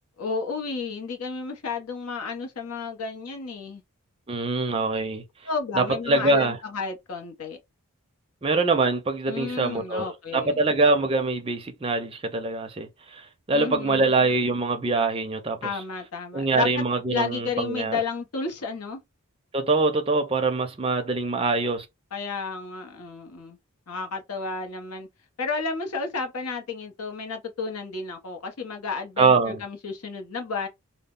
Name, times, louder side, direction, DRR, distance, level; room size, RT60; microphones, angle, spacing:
voice 1, 0.2-3.8 5.4-7.6 9.3-10.7 13.5-14.1 15.6-16.8 17.1-19.0 22.1-23.6 23.9-25.1 25.4-30.7, left 4 dB, 85° left, 0.7 m, -32 dB
voice 2, 4.3-5.2 5.8-6.6 8.4-10.0 10.3-15.7 16.3-18.0 19.5-21.9 29.2-29.6, right 3 dB, 25° right, 0.4 m, -24 dB
2.0 x 2.0 x 3.5 m
head